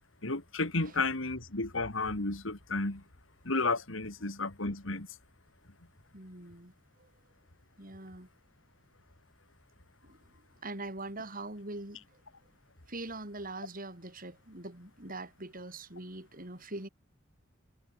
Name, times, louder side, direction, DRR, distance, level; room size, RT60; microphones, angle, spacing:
voice 1, 0.2-3.0 3.4-5.1, left 3 dB, 85° left, 3.2 m, -32 dB
voice 2, 6.1-6.7 7.0-7.1 7.8-8.3 10.0-10.3 10.6-12.1 12.9-16.9, right 2 dB, 45° right, 7.3 m, -43 dB
head